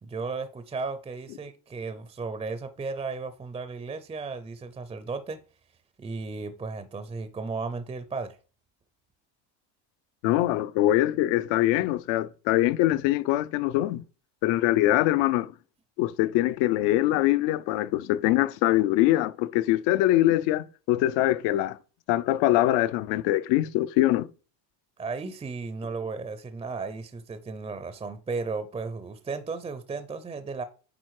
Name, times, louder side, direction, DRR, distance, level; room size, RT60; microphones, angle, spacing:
voice 1, 0.0-5.4 6.0-8.4 25.0-30.6, right 4 dB, 15° right, 0.4 m, -35 dB
voice 2, 10.2-14.0 14.4-15.5 16.0-21.8 22.1-24.3, left 15 dB, 70° left, 0.6 m, -23 dB
9.1 x 3.7 x 4.7 m
cardioid pair, 125°, 46 cm